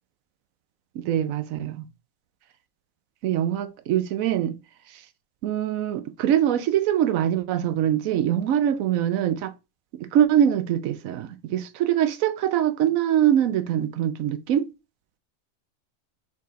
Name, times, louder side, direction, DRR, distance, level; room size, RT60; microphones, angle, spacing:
voice 1, 0.9-1.8 3.2-4.6 5.4-9.5 9.9-14.7, right 10 dB, 85° right, 1.0 m, -23 dB
4.2 x 4.1 x 3.0 m
omnidirectional pair, 1.4 m